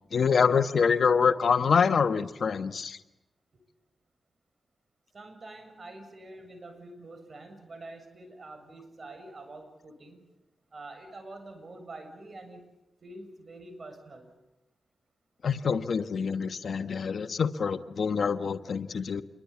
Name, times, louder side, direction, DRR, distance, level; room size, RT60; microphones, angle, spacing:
voice 1, 0.1-3.0 15.4-19.2, left 6 dB, 70° left, 10 dB, 1.2 m, -25 dB
voice 2, 5.1-10.2 10.7-12.6 13.0-14.3, right 2 dB, 50° right, 7 dB, 7.2 m, -46 dB
28.0 x 23.0 x 8.6 m, 0.97 s
cardioid pair, 55°, 0 cm